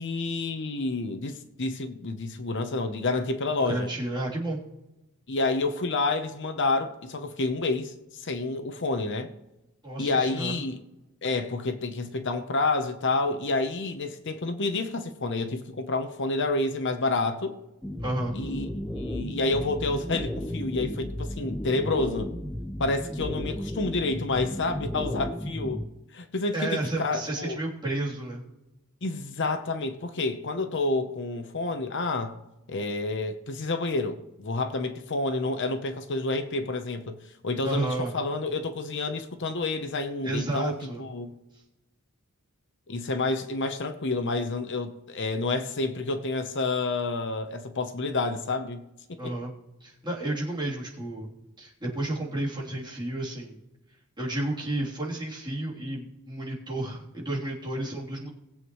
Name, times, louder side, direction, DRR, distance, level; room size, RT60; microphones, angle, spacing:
voice 1, 0.0-3.9 5.3-9.3 10.0-10.8 11.2-17.6 18.3-18.7 18.9-22.3 22.8-25.8 26.1-27.6 29.0-32.4 32.7-37.2 37.4-41.3 42.9-48.8 49.1-49.3, left 3 dB, 55° left, 0.9 m, -29 dB
voice 2, 3.6-4.6 9.8-10.6 18.0-18.3 26.5-28.4 37.6-38.1 40.2-41.0 41.5-41.6 49.2-49.5 49.8-51.3 51.6-53.6 54.2-58.3, right 1 dB, 20° right, 3.3 m, -31 dB
sound 1, 17.8-25.8, left 1 dB, 5° left, 0.5 m, -34 dB
20.5 x 8.0 x 3.1 m
head